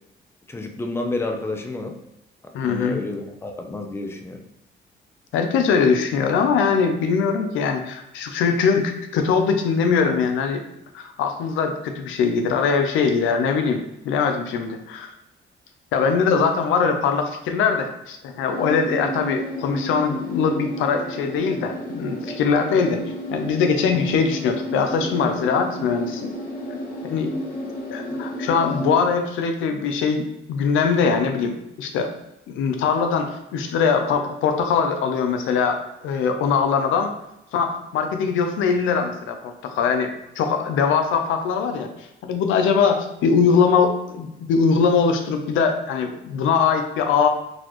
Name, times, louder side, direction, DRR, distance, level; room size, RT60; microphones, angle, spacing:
voice 1, 0.5-2.0 2.6-4.4, left 2 dB, 10° left, 3 dB, 0.5 m, -30 dB
voice 2, 2.5-3.0 5.3-10.6 10.9-15.1 15.9-23.0 23.3-26.3 27.1-27.3 27.9-32.1 32.5-37.1 37.5-41.9 42.2-47.3, left 5 dB, 85° left, 5 dB, 0.5 m, -22 dB
sound 1, 18.5-29.0, equal, 45° left, 0.9 m, -32 dB
4.0 x 2.4 x 3.0 m, 0.86 s
cardioid pair, 90°, 20 cm